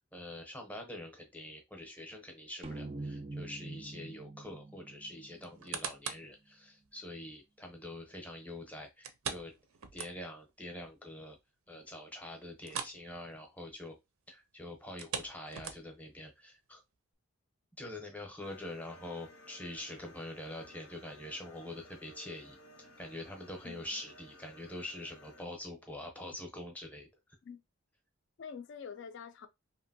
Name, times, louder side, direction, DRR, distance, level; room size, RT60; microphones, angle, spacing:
voice 1, 0.1-9.5 9.9-11.4 11.7-13.9 14.3-16.8 17.8-22.6 23.0-27.1, left 1 dB, 5° left, 0.6 m, -45 dB
sound 1, 2.6-6.1, right 2 dB, 25° right, 0.3 m, -44 dB
sound 2, 5.4-6.3 6.8-6.9 9.0-10.5 10.8-10.9 11.4-11.5 12.6-13.0 13.3-13.5 14.8-16.1 16.7-16.8, right 7 dB, 85° right, 0.5 m, -41 dB
sound 3, 18.4-25.5, left 1 dB, 85° left, 0.8 m, -57 dB
voice 2, 23.6-24.0 27.4-27.6 28.4-29.5, left 6 dB, 60° left, 0.3 m, -46 dB
2.8 x 2.6 x 2.6 m
head